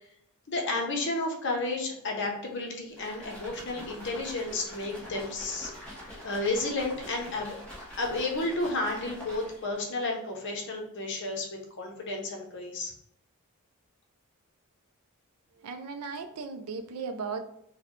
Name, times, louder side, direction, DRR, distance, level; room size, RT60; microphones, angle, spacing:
voice 1, 0.5-5.7 6.2-7.6 8.0-12.9, left 2 dB, 55° left, 1 dB, 0.7 m, -32 dB
sound 1, 2.9-9.8, equal, 5° left, 1.1 m, -45 dB
voice 2, 15.6-17.4, right 5 dB, 85° right, 8 dB, 0.4 m, -36 dB
3.9 x 2.2 x 3.1 m, 0.72 s
head